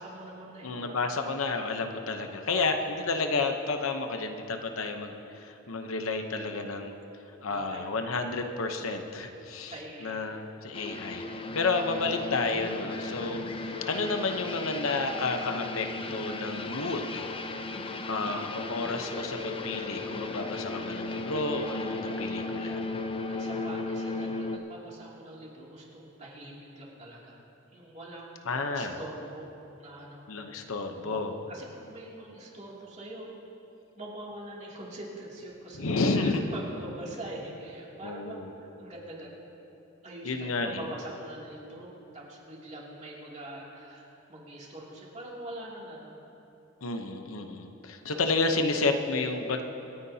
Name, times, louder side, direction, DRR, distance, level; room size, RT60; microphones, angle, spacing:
voice 1, 0.0-1.2 2.5-2.8 7.5-7.9 9.7-10.2 23.3-27.4 27.7-29.5 29.8-30.2 31.0-33.3 34.0-35.9 36.1-39.4 40.0-46.1 48.1-48.3, right 1 dB, 35° right, -5 dB, 2.7 m, -43 dB
voice 2, 0.6-6.9 7.4-13.4 13.9-17.3 18.1-22.8 28.5-29.0 30.3-31.4 35.7-36.4 38.0-38.5 40.2-40.9 46.8-49.6, left 3 dB, 85° left, 5 dB, 0.9 m, -31 dB
sound 1, 10.7-24.6, left 3 dB, 25° left, 0.6 m, -35 dB
26.5 x 9.7 x 2.8 m, 2.9 s
head